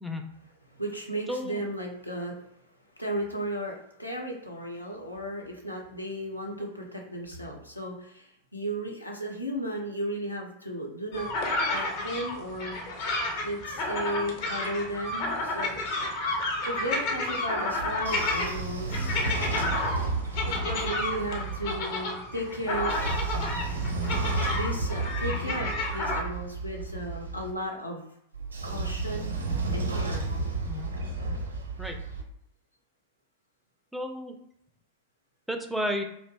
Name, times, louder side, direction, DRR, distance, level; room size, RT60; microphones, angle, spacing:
voice 1, 0.4-2.5 3.0-11.3 11.7-12.8 13.4-15.8 16.6-19.2 20.4-23.0 24.5-28.1 28.6-29.3 29.7-30.3, right 1 dB, 85° left, -1 dB, 0.5 m, -35 dB
voice 2, 1.3-1.6 30.7-30.9 31.8-32.0 33.9-34.3 35.5-36.0, equal, ahead, 3 dB, 0.3 m, -32 dB
sound 1, 11.1-26.2, left 2 dB, 45° left, 0.6 m, -31 dB
Train / Sliding door, 17.8-21.8 22.6-27.5 28.3-32.2, right 3 dB, 75° right, 0.6 m, -32 dB
2.4 x 2.0 x 3.2 m, 0.74 s
figure-of-eight pair, 90°, 0 cm